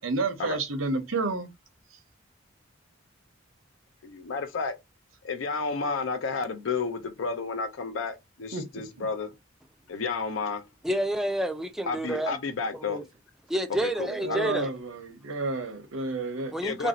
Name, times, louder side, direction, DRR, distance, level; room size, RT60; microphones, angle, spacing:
voice 1, 0.0-1.5 8.5-8.7 9.0-9.1 14.1-16.5, right 3 dB, 85° right, 0.8 m, -30 dB
voice 2, 4.0-4.7 5.2-9.3 9.9-10.6 11.9-13.0 13.8-14.7 16.6-16.9, left 4 dB, 70° left, 0.5 m, -31 dB
voice 3, 10.8-12.4 12.7-13.0 13.5-14.7 16.5-16.9, right 1 dB, ahead, 0.4 m, -29 dB
3.0 x 2.6 x 4.0 m
head